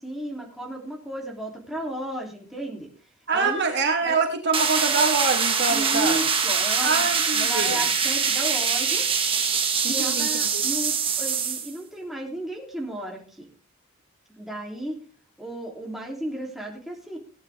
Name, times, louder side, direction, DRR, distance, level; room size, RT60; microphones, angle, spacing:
voice 1, 0.0-2.9 3.3-3.6 4.0-4.2 5.7-7.0 7.3-9.0 9.8-13.5 14.4-15.0 15.4-17.2, right 1 dB, ahead, -2 dB, 3.1 m, -33 dB
voice 2, 3.3-6.2 6.8-7.8 9.8-10.6, right 4 dB, 50° right, 3 dB, 2.6 m, -25 dB
sound 1, 4.5-11.7, right 6 dB, 25° right, 2.0 m, -24 dB
18.0 x 10.5 x 3.5 m, 0.37 s
head